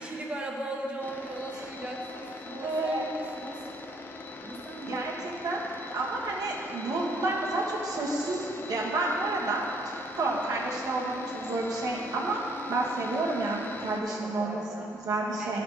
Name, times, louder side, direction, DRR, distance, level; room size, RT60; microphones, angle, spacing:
voice 1, 0.0-3.6 4.4-5.0 14.1-14.9 15.4-15.6, right 1 dB, 15° right, -1 dB, 0.7 m, -37 dB
sound 1, 1.0-14.0, left 3 dB, 35° left, 0.6 m, -42 dB
voice 2, 2.6-3.1 4.8-5.6 5.9-12.4 12.7-14.6 15.0-15.6, right 2 dB, 75° right, -4 dB, 1.3 m, -30 dB
11.0 x 4.1 x 4.6 m, 2.8 s
wide cardioid pair, 135°, 6 cm